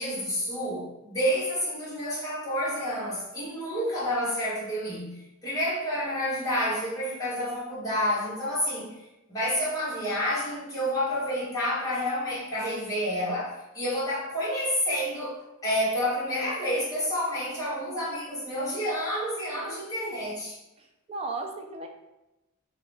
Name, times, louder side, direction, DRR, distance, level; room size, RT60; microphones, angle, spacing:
voice 1, 0.0-8.9 9.3-15.4 15.6-20.5, equal, 15° left, -9 dB, 1.2 m, -29 dB
voice 2, 20.8-21.9, right 3 dB, 25° right, 3 dB, 0.4 m, -36 dB
2.7 x 2.6 x 3.2 m, 0.95 s
head